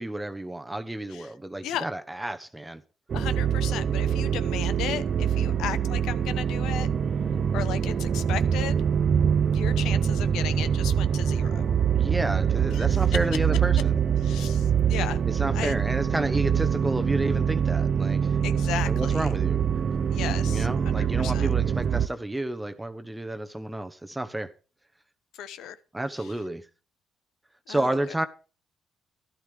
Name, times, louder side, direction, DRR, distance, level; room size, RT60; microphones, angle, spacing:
voice 1, 0.0-2.8 11.9-14.0 15.3-18.4 18.8-19.6 20.4-24.5 25.9-26.6 27.7-28.3, right 1 dB, 10° right, 1.1 m, -31 dB
voice 2, 3.1-6.9 7.5-8.8 9.4-11.7 12.7-12.9 14.2-15.2 15.5-15.8 18.4-19.3 20.1-21.5 25.3-25.8 26.2-26.3 27.7-28.0, left 10 dB, 85° left, 0.9 m, -35 dB
sound 1, 3.1-22.1, right 8 dB, 50° right, 0.6 m, -24 dB
12.5 x 12.0 x 3.5 m
cardioid pair, 90°, 0 cm